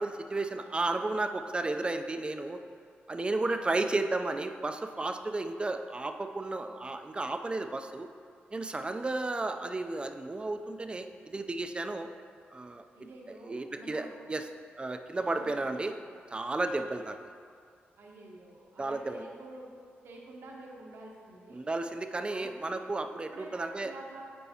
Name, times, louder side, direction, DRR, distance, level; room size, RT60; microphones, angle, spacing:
voice 1, 0.0-2.6 3.1-8.1 8.5-12.1 12.5-12.8 13.4-14.5 14.8-15.9 16.3-17.2 18.8-19.2 21.5-23.9, right 2 dB, 25° right, 7 dB, 0.4 m, -33 dB
voice 2, 3.3-3.7 12.9-14.2 15.3-15.9 18.0-19.7 20.0-21.6 22.3-22.8 23.3-24.3, right 2 dB, 75° right, -1 dB, 1.1 m, -49 dB
9.5 x 4.5 x 2.8 m, 2.2 s
cardioid pair, 65°, 4 cm